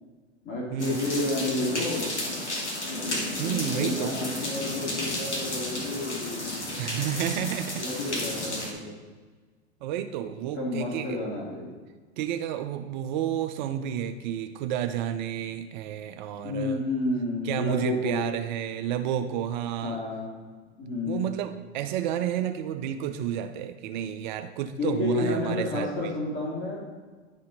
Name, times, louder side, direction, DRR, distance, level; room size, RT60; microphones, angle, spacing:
voice 1, 0.4-2.1 3.6-6.7 7.7-9.0 10.5-11.7 16.4-18.3 19.8-20.4 20.8-21.3 24.8-26.9, left 2 dB, 35° left, -3 dB, 2.4 m, -30 dB
sound 1, 0.8-8.7, left 1 dB, 90° left, 1.3 m, -32 dB
voice 2, 3.4-4.1 6.8-7.9 9.8-11.2 12.2-16.8 17.4-20.0 21.0-25.9, right 10 dB, 45° right, 9 dB, 0.5 m, -31 dB
10.5 x 4.2 x 3.8 m, 1.4 s
figure-of-eight pair, 95°, 34 cm